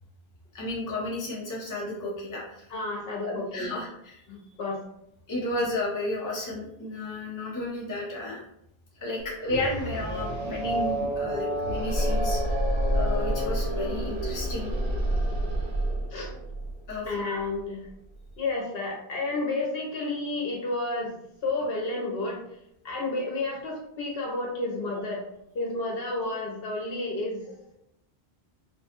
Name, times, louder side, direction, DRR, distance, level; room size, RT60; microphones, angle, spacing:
voice 1, 0.5-2.7 3.2-4.2 5.3-8.4 9.0-12.6 12.9-14.7 16.9-17.1, left 2 dB, 20° left, -5 dB, 0.6 m, -32 dB
voice 2, 2.7-3.8 4.3-4.8 16.1-16.3 17.1-17.9 18.4-21.2 21.4-22.4 22.8-25.3 25.5-27.6, left 2 dB, 70° left, -1 dB, 0.9 m, -31 dB
sound 1, 9.2-9.3 9.5-18.3, right 1 dB, 80° right, 1.0 m, -30 dB
sound 2, 9.4-15.0, equal, 45° left, 1.0 m, -32 dB
2.6 x 2.2 x 2.8 m, 0.77 s
omnidirectional pair, 1.1 m